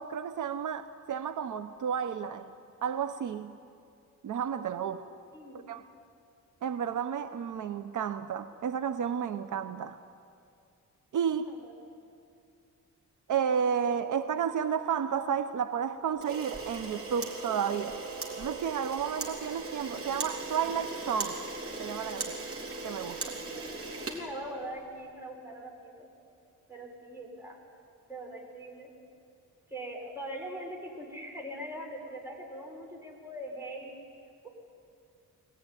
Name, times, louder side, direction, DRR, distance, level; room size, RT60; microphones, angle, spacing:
voice 1, 0.0-2.5 2.8-3.5 4.2-5.0 5.7-5.9 6.6-10.0 11.1-11.5 13.3-18.0 18.4-21.5 21.8-22.4 22.8-23.4, right 7 dB, 70° right, 0.8 m, -32 dB
voice 2, 11.5-11.8 23.2-23.7 24.1-26.1 26.7-27.6 28.1-28.9 29.7-33.9, right 1 dB, 10° right, 5.4 m, -42 dB
Camera, 16.2-24.9, right 3 dB, 45° right, 3.6 m, -38 dB
23.5 x 19.0 x 9.8 m
cardioid pair, 115°, 32 cm